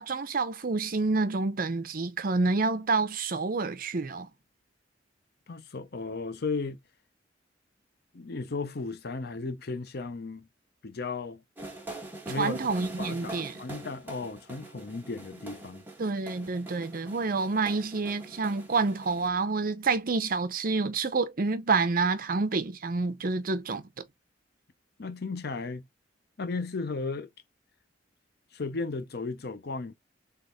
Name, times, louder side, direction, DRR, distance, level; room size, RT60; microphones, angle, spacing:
voice 1, 0.0-4.3 12.4-13.6 16.0-23.8, right 4 dB, 50° right, 0.7 m, -28 dB
voice 2, 5.5-6.8 8.1-10.5 10.8-11.4 12.3-12.6 13.0-15.8 25.0-25.8 26.4-27.3 28.5-29.9, left 3 dB, 60° left, 0.7 m, -35 dB
sound 1, 11.6-19.3, right 2 dB, 10° right, 1.3 m, -43 dB
3.5 x 3.5 x 3.9 m
head